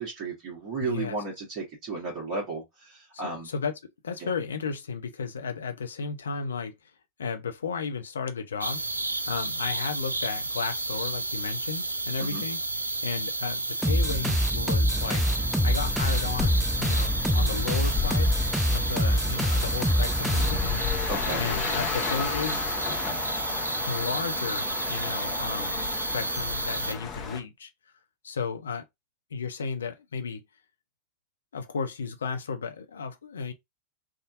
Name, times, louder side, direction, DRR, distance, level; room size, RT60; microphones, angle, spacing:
voice 1, 0.0-3.5 4.2-4.3 12.2-12.4 21.1-21.5, right 3 dB, 40° right, 1.5 m, -34 dB
voice 2, 0.8-1.1 3.2-6.7 7.2-8.8 9.3-12.6 12.9-15.2 15.6-18.3 18.7-20.8 21.4-22.7 23.8-27.7 28.2-28.8 29.3-30.4 31.5-33.5, left 5 dB, 70° left, 0.6 m, -34 dB
sound 1, 8.6-26.9, right 2 dB, 80° right, 0.4 m, -31 dB
sound 2, 13.8-21.0, equal, ahead, 0.3 m, -26 dB
sound 3, 14.9-27.4, left 7 dB, 30° left, 0.9 m, -34 dB
3.5 x 2.6 x 2.5 m
figure-of-eight pair, 90°, 0 cm